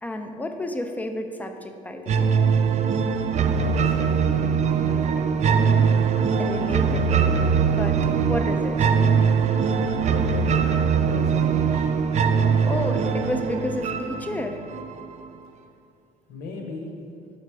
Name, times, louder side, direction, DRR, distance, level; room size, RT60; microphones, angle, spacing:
voice 1, 0.0-2.3 6.4-8.0 8.3-8.9 12.6-14.6, left 1 dB, 10° left, 5 dB, 0.5 m, -31 dB
sound 1, 2.1-15.0, right 6 dB, 45° right, 0.4 m, -22 dB
voice 2, 3.6-4.5 4.8-5.5 10.1-11.9 16.3-16.9, left 3 dB, 70° left, 0 dB, 1.2 m, -37 dB
6.5 x 4.9 x 4.7 m, 2.5 s
cardioid pair, 110°, 17 cm